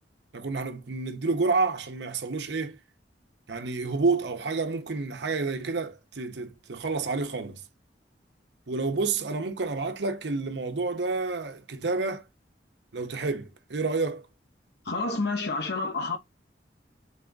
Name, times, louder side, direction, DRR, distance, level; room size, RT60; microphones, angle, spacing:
voice 1, 0.3-2.8 3.5-7.6 8.7-12.2 12.9-14.3, right 3 dB, 70° right, 0.8 m, -29 dB
voice 2, 14.8-16.2, left 3 dB, 65° left, 1.0 m, -29 dB
4.0 x 3.5 x 3.8 m
head